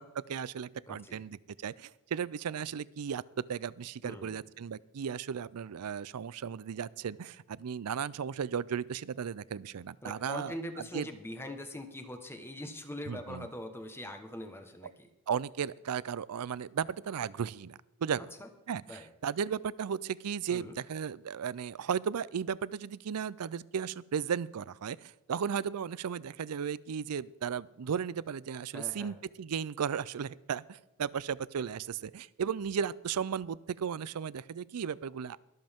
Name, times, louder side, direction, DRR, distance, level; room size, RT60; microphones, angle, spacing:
voice 1, 0.0-11.1 13.1-13.5 14.8-14.9 15.3-18.3 18.7-35.4, right 7 dB, 85° right, 20 dB, 0.4 m, -35 dB
voice 2, 0.9-1.2 4.0-4.4 10.0-15.1 18.4-18.5 18.9-19.1 20.5-20.8 28.7-29.2, left 1 dB, 10° left, 6 dB, 1.2 m, -42 dB
22.5 x 7.8 x 3.6 m, 0.99 s
head